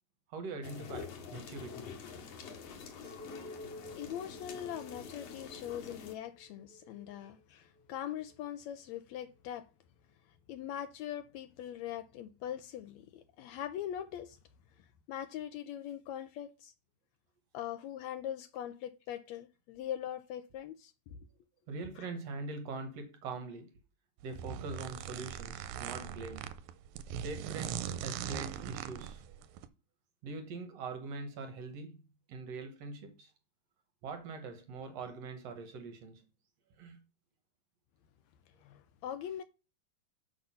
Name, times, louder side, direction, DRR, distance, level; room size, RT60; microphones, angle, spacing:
voice 1, 0.3-1.9 7.2-7.3 21.7-23.7 24.2-26.5 27.2-29.4 30.2-32.0 32.3-33.3 34.0-36.3 36.8-37.0, right 3 dB, 65° right, 1.9 m, -43 dB
sound 1, 0.6-6.1, left 6 dB, 60° left, 2.2 m, -47 dB
Chink clink, 3.0-8.5, left 1 dB, 35° right, 1.5 m, -52 dB
voice 2, 4.0-9.7 10.5-14.4 15.1-16.7 17.5-21.2 22.0-22.1 38.6-39.4, left 10 dB, 75° left, 1.7 m, -42 dB
sound 2, 24.2-29.7, right 9 dB, 85° right, 2.0 m, -40 dB
6.4 x 5.9 x 5.5 m
omnidirectional pair, 3.5 m